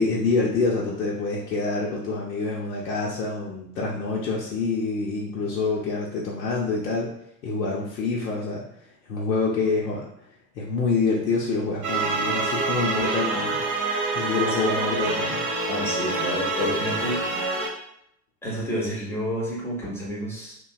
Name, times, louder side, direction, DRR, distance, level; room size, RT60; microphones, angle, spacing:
voice 1, 0.0-7.1 7.4-8.6 9.1-10.1 10.6-13.6 14.1-15.4, left 3 dB, 85° left, -5 dB, 0.6 m, -26 dB
sound 1, 11.8-17.7, right 3 dB, 35° right, 0.8 m, -26 dB
voice 2, 15.7-17.3 18.4-20.6, equal, 5° left, -5 dB, 0.3 m, -29 dB
2.5 x 2.1 x 2.3 m, 0.74 s
figure-of-eight pair, 75°, 49 cm